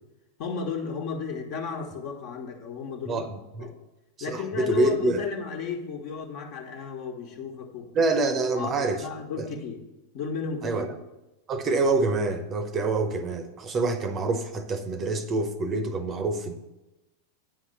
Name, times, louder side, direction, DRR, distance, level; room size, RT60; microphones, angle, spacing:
voice 1, 0.4-3.3 3.6-3.7 4.2-8.0 8.5-9.8 10.1-10.9, left 6 dB, 45° left, 4 dB, 1.5 m, -34 dB
voice 2, 4.3-5.2 7.9-9.0 10.6-10.9 11.5-16.5, right 3 dB, 25° right, 9 dB, 0.8 m, -26 dB
9.4 x 5.7 x 6.9 m, 0.98 s
figure-of-eight pair, 90°, 0 cm